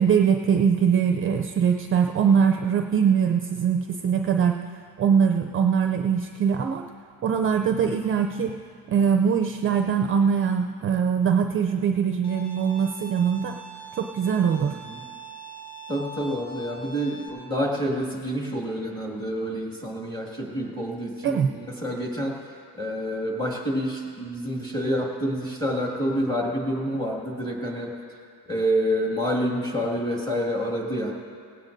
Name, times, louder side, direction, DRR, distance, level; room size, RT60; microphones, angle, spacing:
voice 1, 0.0-4.6 5.0-6.9 7.2-8.6 8.9-13.6 14.0-14.8 21.2-21.5, right 7 dB, 35° right, 4 dB, 0.4 m, -22 dB
Bowed string instrument, 12.2-17.3, right 2 dB, 75° left, 3.0 m, -42 dB
voice 2, 15.9-27.9 28.5-31.1, equal, 10° left, -2 dB, 2.0 m, -28 dB
18.5 x 16.5 x 2.6 m, 2.3 s
cardioid pair, 160°, 37 cm